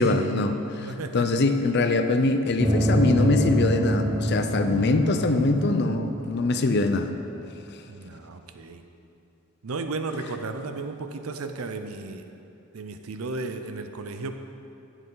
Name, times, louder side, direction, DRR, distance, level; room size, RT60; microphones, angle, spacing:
voice 1, 0.0-7.1, left 2 dB, 50° left, 7 dB, 0.5 m, -23 dB
voice 2, 0.8-1.3 7.9-8.8 9.6-12.3 12.7-14.3, right 3 dB, 85° right, 7 dB, 0.7 m, -34 dB
sound 1, 2.6-7.5, right 1 dB, 25° right, 1.5 m, -26 dB
11.0 x 8.1 x 3.9 m, 2.7 s
head